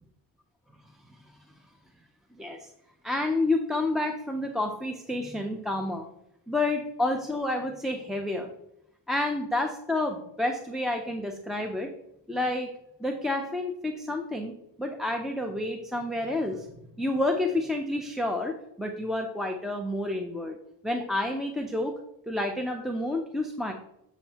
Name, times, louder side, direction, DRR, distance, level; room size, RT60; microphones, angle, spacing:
voice 1, 2.4-2.7 3.0-6.1 6.5-8.5 9.1-11.9 12.3-12.7 13.0-16.7 17.0-20.6 20.8-22.0 22.3-23.7, left 2 dB, ahead, 2 dB, 0.5 m, -29 dB
7.3 x 7.1 x 2.9 m, 0.82 s
wide cardioid pair, 110°, 44 cm